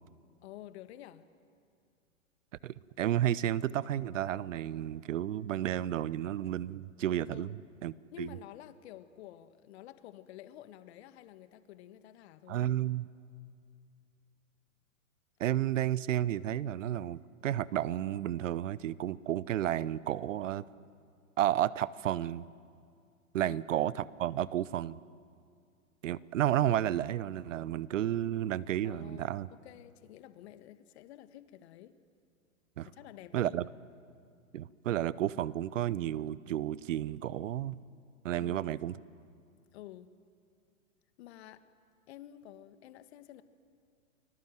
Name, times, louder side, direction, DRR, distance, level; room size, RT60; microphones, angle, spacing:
voice 1, 0.4-1.2 7.3-7.6 8.1-12.6 23.4-23.6 28.8-32.0 32.8-33.6 38.3-38.7 39.7-40.1 41.2-41.6 42.1-43.4, left 12 dB, 50° left, 11 dB, 1.6 m, -50 dB
voice 2, 2.6-7.6 7.8-8.3 12.5-13.1 15.4-20.6 21.4-22.4 23.3-25.0 26.0-29.5 32.8-32.9 33.3-33.6 34.5-37.8 38.2-38.9, right 12 dB, 65° right, 19 dB, 0.9 m, -32 dB
30.0 x 22.0 x 7.7 m, 2.3 s
hypercardioid pair, 120°, 40 cm